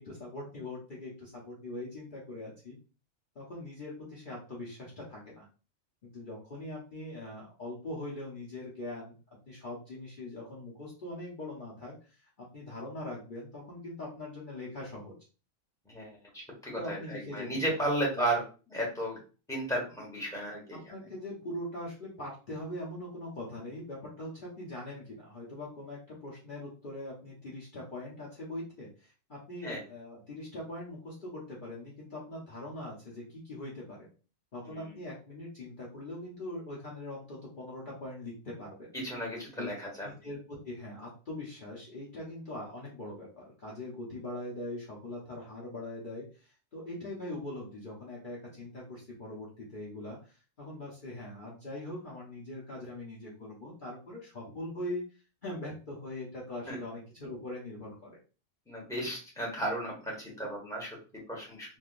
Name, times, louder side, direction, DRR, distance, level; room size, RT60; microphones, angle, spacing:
voice 1, 0.0-2.8 3.3-5.5 6.0-9.2 9.5-15.1 16.7-17.7 18.2-18.3 20.7-34.1 34.5-38.9 39.6-39.7 40.2-55.1 55.4-58.2, left 1 dB, 45° left, -5 dB, 0.9 m, -42 dB
voice 2, 15.9-18.4 18.7-19.2 19.5-20.8 29.6-29.8 34.7-35.0 38.9-40.1 56.7-56.8 58.7-61.8, right 1 dB, 5° left, -3 dB, 1.1 m, -34 dB
3.4 x 2.5 x 2.4 m, 0.35 s
omnidirectional pair, 1.3 m